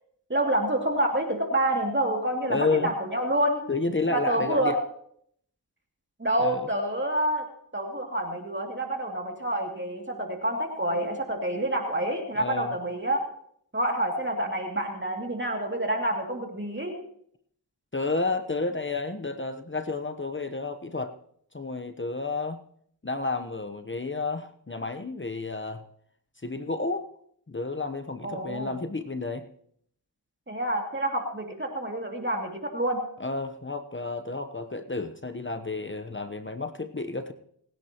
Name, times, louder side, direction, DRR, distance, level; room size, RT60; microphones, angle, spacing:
voice 1, 0.3-3.6 4.1-4.8 6.2-7.5 7.7-13.2 13.7-16.9 28.2-28.8 30.5-33.0, right 1 dB, 25° right, 2 dB, 2.7 m, -28 dB
voice 2, 2.5-2.9 3.7-4.8 6.4-6.6 12.4-12.7 17.9-21.1 21.5-22.6 23.0-25.8 26.4-27.1 27.5-29.4 33.2-37.3, left 3 dB, 30° left, 8 dB, 1.0 m, -31 dB
28.0 x 10.0 x 3.0 m, 0.67 s
cardioid pair, 40°, 42 cm